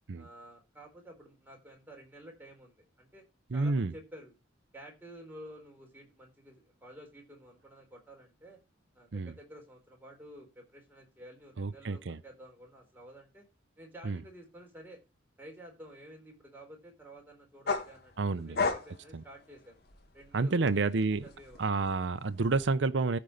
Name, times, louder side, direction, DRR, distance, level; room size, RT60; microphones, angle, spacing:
voice 1, 0.2-3.3 3.5-4.3 4.7-8.6 8.9-13.5 13.8-15.0 15.4-19.8 20.1-21.6, equal, 10° right, 4.0 m, -51 dB
voice 2, 3.5-3.9 9.1-9.3 11.6-12.2 14.0-14.2 18.2-18.6 19.1-19.2 20.3-21.2 21.6-23.2, right 3 dB, 65° right, 0.6 m, -29 dB
sound 1, 17.7-20.3 20.7-22.7, left 4 dB, 55° left, 1.9 m, -35 dB
14.0 x 5.2 x 4.9 m
head